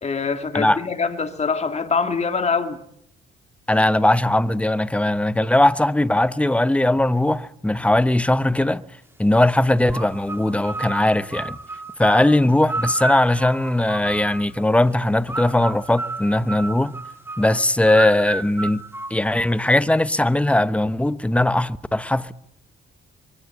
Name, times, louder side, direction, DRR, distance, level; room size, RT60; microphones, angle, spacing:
voice 1, 0.0-2.8, left 5 dB, 35° left, 2.3 m, -24 dB
voice 2, 3.7-8.8 9.2-11.6 12.0-16.9 17.4-18.8 19.1-22.3, left 1 dB, 5° left, 1.0 m, -19 dB
sound 1, 9.9-14.6 15.3-19.7, right 2 dB, 10° right, 1.8 m, -32 dB
23.0 x 16.5 x 9.6 m
cardioid pair, 90°, 20 cm